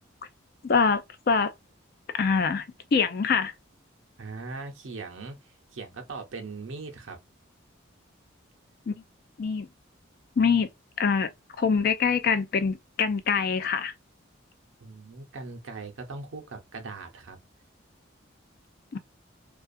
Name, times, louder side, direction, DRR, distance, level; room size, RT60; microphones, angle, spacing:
voice 1, 0.6-1.5 2.2-2.6 2.9-3.5 8.9-9.0 9.4-9.7 10.4-10.7 11.0-11.3 11.6-13.9 18.9-19.0, left 5 dB, 45° left, 0.4 m, -24 dB
voice 2, 4.2-5.4 5.7-7.2 14.8-17.4, right 3 dB, 75° right, 0.7 m, -40 dB
2.4 x 2.4 x 2.5 m
head